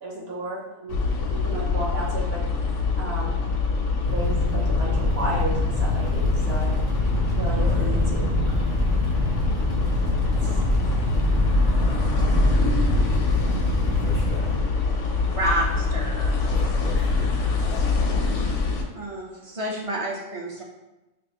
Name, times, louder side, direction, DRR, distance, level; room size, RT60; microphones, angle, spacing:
voice 1, 0.0-2.4 3.0-3.3 4.1-6.8 7.3-8.3 10.3-11.0, right 1 dB, 60° right, -4 dB, 1.0 m, -33 dB
sound 1, 0.9-18.8, left 4 dB, 80° left, 0.9 m, -24 dB
Fire, 4.0-14.3, equal, 80° right, 1.5 m, -27 dB
voice 2, 7.5-8.1 14.0-14.7 16.5-17.9, left 2 dB, 50° left, -4 dB, 0.5 m, -36 dB
voice 3, 15.3-16.5 18.9-20.6, right 1 dB, 40° right, -2 dB, 0.5 m, -29 dB
5.2 x 2.0 x 2.9 m, 1.0 s
omnidirectional pair, 1.3 m